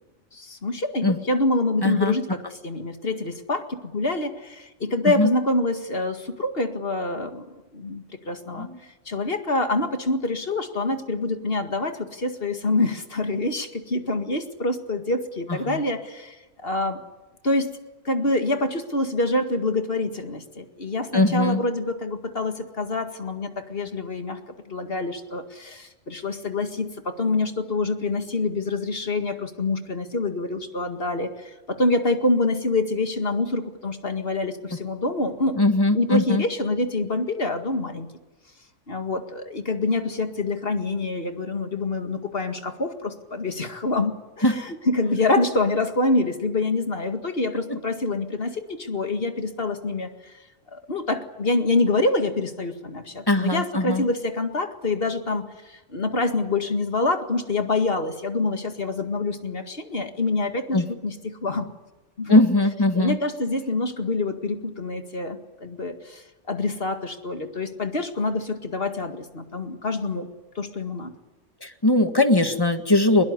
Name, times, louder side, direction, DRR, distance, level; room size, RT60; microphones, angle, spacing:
voice 1, 0.3-7.5 7.7-17.0 17.4-17.8 18.0-24.4 24.7-35.6 35.9-38.1 38.9-50.3 50.7-61.7 62.2-62.4 62.9-70.3 70.6-71.1, left 2 dB, 50° left, 7 dB, 2.2 m, -26 dB
voice 2, 1.8-2.1 5.0-5.3 8.6-8.8 15.5-15.8 21.1-21.6 35.5-36.4 44.4-44.5 47.7-47.8 53.3-54.0 60.7-60.9 62.3-63.2 71.6-73.2, left 2 dB, 20° left, 7 dB, 1.8 m, -20 dB
23.0 x 21.5 x 9.8 m, 1.1 s
omnidirectional pair, 1.3 m